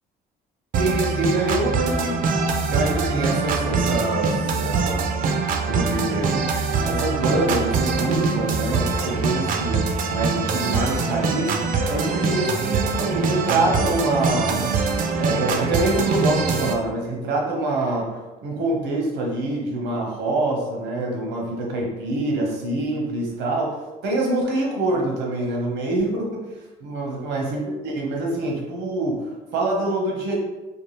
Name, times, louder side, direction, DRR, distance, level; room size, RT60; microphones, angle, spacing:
sound 1, 0.7-16.7, right 4 dB, 55° right, 0.5 m, -23 dB
voice 1, 0.8-2.3 2.7-5.1 5.6-6.4 6.8-11.6 11.9-14.7 15.1-26.5 26.8-30.4, right 2 dB, 85° right, -1 dB, 1.0 m, -25 dB
4.5 x 2.4 x 3.2 m, 1.2 s
cardioid pair, 110°, 17 cm